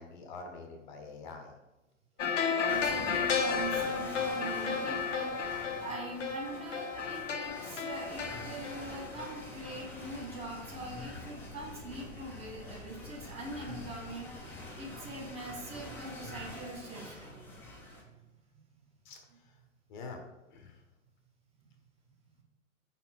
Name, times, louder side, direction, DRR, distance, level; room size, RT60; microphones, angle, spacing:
voice 1, 0.0-1.6 19.0-19.6 19.9-20.2 20.5-20.8, left 3 dB, 35° left, 4 dB, 0.9 m, -46 dB
sound 1, 2.2-9.8 10.1-10.2, left 5 dB, 65° left, 0.8 m, -33 dB
voice 2, 2.6-17.8, right 2 dB, 15° right, -2 dB, 1.0 m, -43 dB
sound 2, 2.7-18.0, left 2 dB, 5° left, 0.6 m, -46 dB
5.4 x 4.3 x 4.4 m, 0.98 s
figure-of-eight pair, 115°, 39 cm